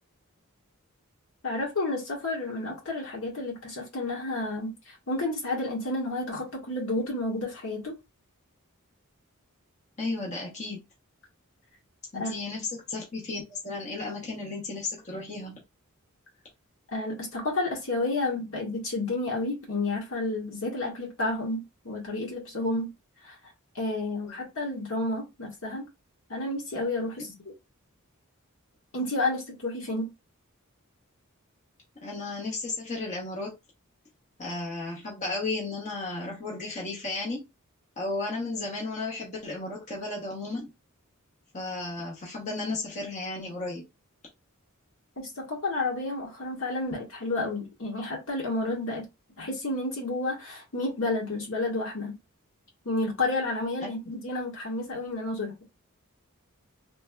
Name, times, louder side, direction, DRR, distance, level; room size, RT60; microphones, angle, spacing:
voice 1, 1.4-7.9 12.1-12.3 16.9-22.9 23.2-23.4 23.7-25.8 26.3-27.5 28.9-30.1 45.2-49.1 49.4-52.2 52.8-55.5, left 2 dB, 65° left, 1.4 m, -31 dB
voice 2, 10.0-10.8 12.1-15.6 24.1-24.3 32.0-33.5 34.4-37.5 38.0-40.7 41.5-43.8 53.8-53.9, left 3 dB, 35° left, 0.8 m, -34 dB
3.2 x 2.7 x 2.2 m
head